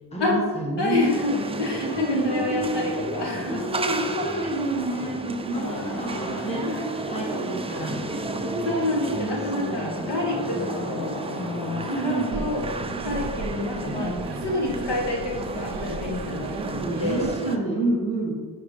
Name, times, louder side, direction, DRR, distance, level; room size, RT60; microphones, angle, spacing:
voice 1, 0.1-1.1 1.8-2.9 3.4-6.7 7.1-8.0 9.1-9.9 11.9-12.4 13.8-14.4 16.6-16.7 17.0-18.3, right 2 dB, 15° left, -2 dB, 1.3 m, -29 dB
voice 2, 0.8-3.6 6.6-6.8 8.6-17.3, left 2 dB, 80° left, -1 dB, 1.5 m, -28 dB
sound 1, 1.0-17.6, right 2 dB, 15° right, 0.3 m, -32 dB
Traffic noise roadway noise, 5.5-12.3, left 1 dB, 60° left, 1.7 m, -39 dB
sound 2, 12.3-17.4, right 5 dB, 80° right, 0.5 m, -36 dB
5.1 x 4.8 x 5.0 m, 1.5 s
wide cardioid pair, 140°, 42 cm